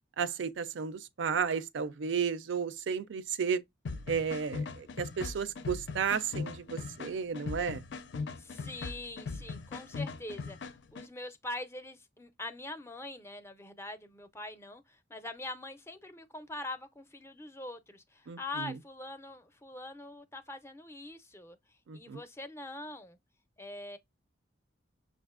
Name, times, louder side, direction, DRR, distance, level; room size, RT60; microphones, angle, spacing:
voice 1, 0.2-3.6 4.1-7.8 18.3-18.8 21.9-22.2, right 6 dB, 80° right, 0.4 m, -33 dB
sound 1, 3.8-11.1, left 4 dB, 70° left, 0.5 m, -40 dB
voice 2, 8.4-21.6 21.9-23.2 23.6-24.0, left 2 dB, 15° left, 0.4 m, -43 dB
6.3 x 2.4 x 2.4 m
head